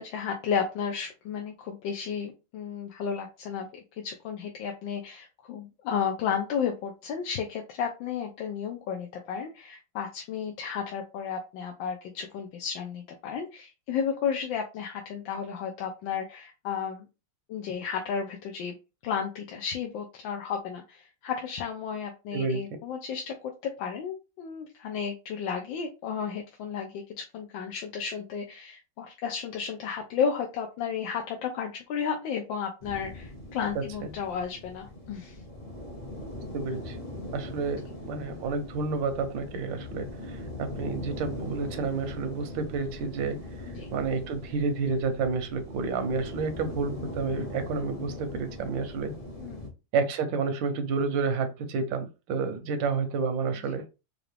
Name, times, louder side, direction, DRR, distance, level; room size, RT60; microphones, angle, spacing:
voice 1, 0.0-17.1 17.5-18.7 19.0-35.4 43.6-43.9 49.4-49.7 53.6-53.7, left 7 dB, 90° left, 2 dB, 1.4 m, -33 dB
voice 2, 22.3-22.6 33.7-34.1 36.5-37.0 37.3-43.4 43.9-49.1 49.9-53.9, right 4 dB, 85° right, 8 dB, 1.5 m, -30 dB
sound 1, 32.8-49.7, left 1 dB, 55° left, 0.4 m, -40 dB
4.6 x 2.5 x 3.3 m, 0.28 s
omnidirectional pair, 2.0 m